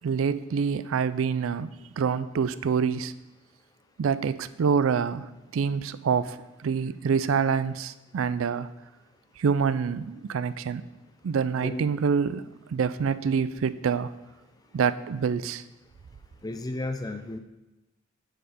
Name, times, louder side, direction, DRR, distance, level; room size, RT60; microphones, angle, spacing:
voice 1, 0.0-1.7 2.0-3.1 4.0-8.7 9.4-10.8 11.2-12.4 12.7-14.1 14.7-15.6, right 6 dB, 80° right, 0.4 m, -26 dB
voice 2, 16.4-17.4, left 2 dB, 20° left, 0.4 m, -33 dB
9.0 x 4.8 x 5.0 m
head